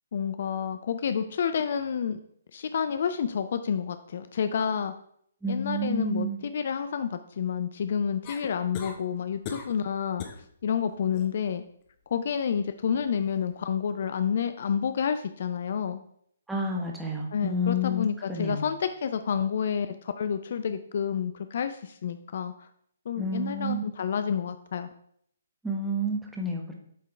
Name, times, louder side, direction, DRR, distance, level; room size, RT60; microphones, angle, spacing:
voice 1, 0.1-2.2 2.5-4.9 5.5-10.2 10.6-11.6 12.1-16.0 17.3-22.7 23.1-24.9, left 7 dB, 50° left, 10 dB, 0.4 m, -29 dB
voice 2, 5.4-6.4 16.5-18.6 23.2-23.8 25.6-26.7, equal, 5° right, 0 dB, 1.1 m, -29 dB
sound 1, 8.2-9.0 9.4-9.8 10.2-10.4 10.9-11.3 13.1-13.2, left 6 dB, 30° left, 0.7 m, -39 dB
8.4 x 3.6 x 3.3 m, 0.67 s
figure-of-eight pair, 130°, 0 cm